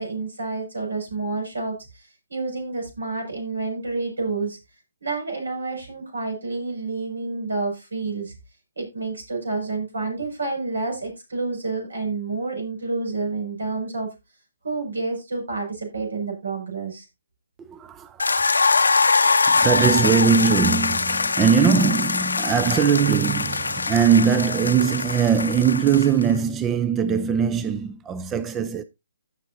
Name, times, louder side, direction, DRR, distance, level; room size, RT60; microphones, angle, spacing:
voice 1, 0.0-4.6 5.0-8.3 8.8-14.1 14.6-17.1, right 3 dB, 80° right, 6.1 m, -29 dB
voice 2, 17.6-18.6 19.2-28.8, right 7 dB, 15° right, 0.5 m, -21 dB
sound 1, 18.2-26.3, left 4 dB, 80° left, 0.7 m, -22 dB
16.0 x 6.4 x 2.7 m
figure-of-eight pair, 140°, 0 cm